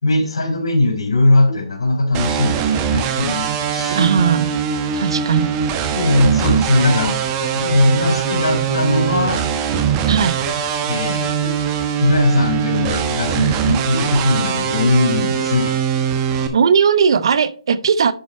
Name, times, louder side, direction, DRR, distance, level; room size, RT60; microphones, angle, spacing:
voice 1, 0.0-4.1 5.9-7.2 7.5-9.4 10.9-11.5 12.0-15.8, left 2 dB, 75° left, 5 dB, 3.1 m, -19 dB
sound 1, 2.1-16.5, right 7 dB, 25° right, 1.1 m, -21 dB
voice 2, 3.9-4.5 4.9-5.5 10.1-10.4 16.5-18.1, right 6 dB, 65° right, 15 dB, 0.7 m, -17 dB
10.5 x 4.3 x 4.3 m, 0.41 s
hypercardioid pair, 145°, 3 cm